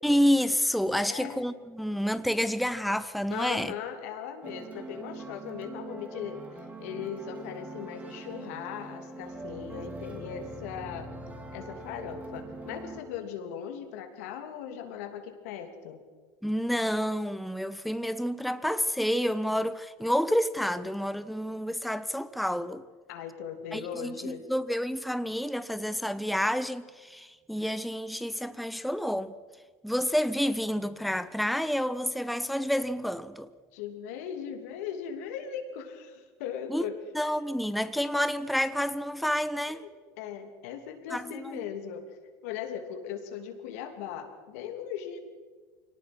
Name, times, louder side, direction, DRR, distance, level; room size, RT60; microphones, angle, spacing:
voice 1, 0.0-3.7 16.4-22.8 23.7-29.3 29.8-33.5 36.7-36.8 37.1-39.8 41.1-41.6, equal, ahead, 0.6 m, -29 dB
voice 2, 1.0-1.4 3.3-6.4 6.8-11.1 11.5-16.0 23.1-24.4 33.7-37.0 39.7-39.9 40.2-42.0 42.4-45.2, left 8 dB, 80° left, 2.9 m, -38 dB
sound 1, 4.4-13.0, right 2 dB, 20° right, 2.8 m, -42 dB
23.5 x 18.5 x 6.1 m
supercardioid pair, 120°, 8 cm